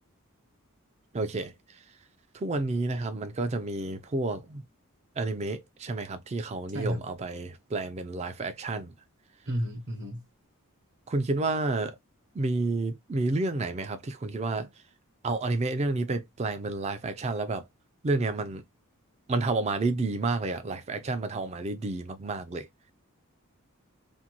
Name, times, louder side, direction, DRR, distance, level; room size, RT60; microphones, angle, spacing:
voice 1, 1.1-1.5 2.3-4.6 5.2-8.9 11.1-12.0 12.4-14.7 15.2-17.6 18.0-18.6 19.3-22.7, right 3 dB, 30° right, 0.3 m, -30 dB
voice 2, 6.7-7.0 9.5-10.2, equal, 50° right, 0.7 m, -32 dB
2.6 x 2.2 x 2.8 m
head